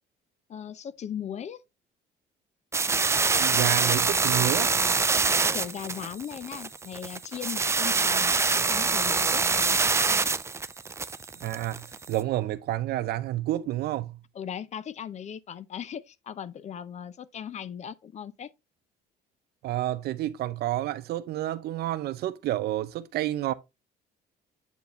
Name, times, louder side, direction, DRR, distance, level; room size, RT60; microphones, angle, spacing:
voice 1, 0.5-1.6 5.5-8.3 8.7-9.8 14.3-18.5, left 9 dB, 40° left, 0.5 m, -38 dB
sound 1, 2.7-12.1, right 4 dB, 15° right, 0.4 m, -25 dB
voice 2, 3.3-4.7 11.4-14.2 19.6-23.5, right 14 dB, 70° right, 0.7 m, -29 dB
8.0 x 4.7 x 3.1 m
cardioid pair, 110°, 17 cm